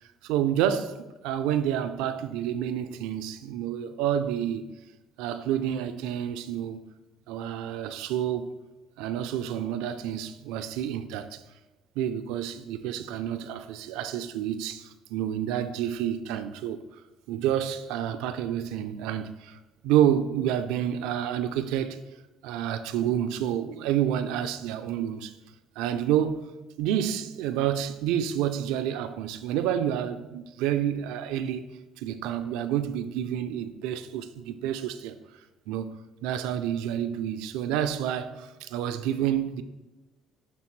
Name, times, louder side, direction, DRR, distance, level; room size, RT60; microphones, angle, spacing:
voice 1, 0.2-4.7 5.2-6.9 7.3-8.5 9.0-11.4 12.0-16.8 17.3-19.6 19.8-22.0 22.4-25.3 25.8-26.5 26.8-31.7 32.0-35.2 35.7-39.6, right 10 dB, 90° right, 0.4 m, -29 dB
10.0 x 3.5 x 3.1 m
cardioid pair, 95°, 0 cm